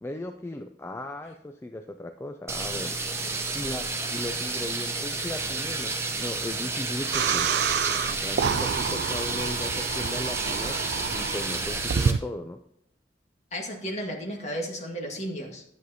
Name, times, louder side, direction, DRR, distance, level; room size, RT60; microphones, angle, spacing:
voice 1, 0.0-3.0 3.5-7.6 8.2-12.6, left 1 dB, 15° left, 6 dB, 0.3 m, -37 dB
sound 1, 2.5-12.1, right 3 dB, 15° right, 0.7 m, -31 dB
sound 2, 7.1-12.2, right 7 dB, 65° right, 0.3 m, -28 dB
voice 2, 13.5-15.6, equal, 40° left, 0 dB, 1.7 m, -33 dB
10.5 x 7.7 x 2.8 m, 0.77 s
head